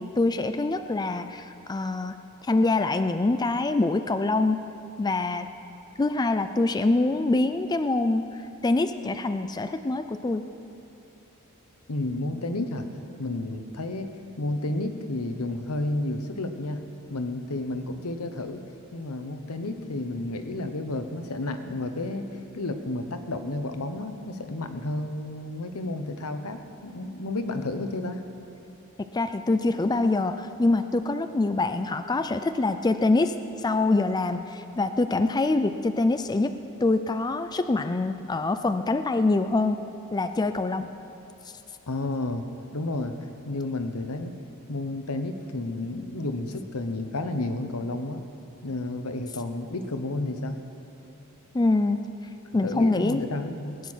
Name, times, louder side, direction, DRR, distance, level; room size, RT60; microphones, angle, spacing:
voice 1, 0.0-2.2 2.5-4.6 5.0-5.5 6.0-8.3 8.6-10.5 29.1-33.3 33.6-36.5 36.8-39.8 40.1-40.9 51.5-52.0 52.5-53.2, left 2 dB, 20° left, 9 dB, 0.4 m, -24 dB
voice 2, 11.9-12.9 13.2-16.8 17.1-18.6 18.9-28.2 41.9-42.4 42.7-43.1 43.5-44.3 44.7-48.2 48.6-50.6 52.6-53.8, left 2 dB, 80° left, 8 dB, 1.1 m, -31 dB
20.0 x 9.3 x 6.3 m, 2.9 s
head